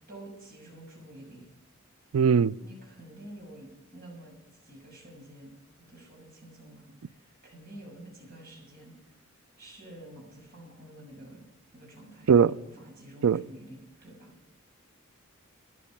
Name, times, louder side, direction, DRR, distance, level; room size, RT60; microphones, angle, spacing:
voice 1, 0.0-1.5 2.6-4.3 4.6-5.5 5.9-8.9 9.6-11.4 11.7-14.3, right 1 dB, 45° right, 6.4 m, -48 dB
voice 2, 2.1-2.5 12.3-12.5 13.2-13.4, right 6 dB, 80° right, 0.4 m, -20 dB
13.5 x 11.0 x 5.9 m
head